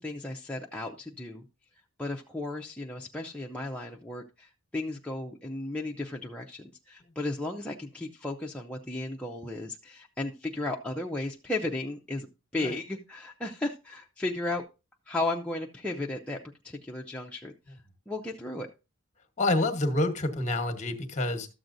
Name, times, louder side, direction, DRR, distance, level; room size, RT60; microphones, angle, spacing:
voice 1, 0.0-1.4 2.0-12.3 12.5-14.6 15.1-17.8 18.1-18.7, left 2 dB, 5° left, 0.5 m, -35 dB
voice 2, 19.4-21.5, left 2 dB, 35° left, 1.2 m, -27 dB
13.0 x 7.5 x 2.6 m
head